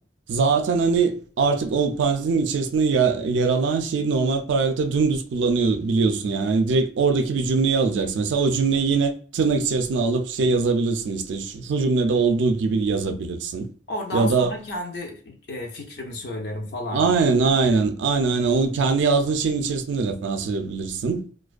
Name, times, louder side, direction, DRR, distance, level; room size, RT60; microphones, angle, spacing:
voice 1, 0.3-13.7 14.1-14.5 16.9-21.2, right 4 dB, 80° right, 0.4 m, -22 dB
voice 2, 13.9-17.1, left 1 dB, 60° left, 0.5 m, -32 dB
2.4 x 2.2 x 2.4 m
head